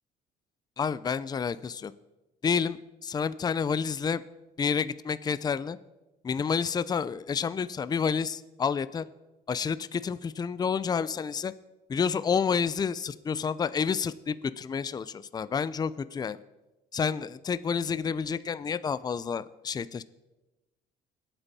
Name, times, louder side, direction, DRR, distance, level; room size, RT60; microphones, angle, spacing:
voice 1, 0.8-1.9 2.4-4.2 4.6-5.8 6.2-9.0 9.5-11.5 11.9-16.4 16.9-20.0, left 6 dB, 25° left, 15 dB, 0.5 m, -29 dB
23.0 x 8.9 x 4.2 m, 1.0 s
cardioid pair, 110°, 17 cm